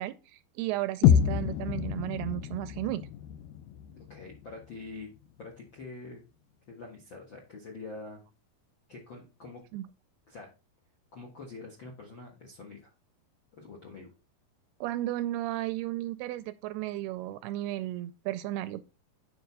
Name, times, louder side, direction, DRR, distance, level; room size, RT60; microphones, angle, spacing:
voice 1, 0.0-3.0 9.7-9.9 14.8-18.8, right 15 dB, 85° right, 2.4 m, -34 dB
sound 1, 1.0-5.0, left 9 dB, 80° left, 2.1 m, -28 dB
voice 2, 3.9-5.1 5.4-6.2 6.7-8.2 8.9-9.6 10.3-10.5 11.1-12.9 13.5-14.1, left 3 dB, 60° left, 1.2 m, -45 dB
8.8 x 5.2 x 4.0 m
omnidirectional pair, 4.8 m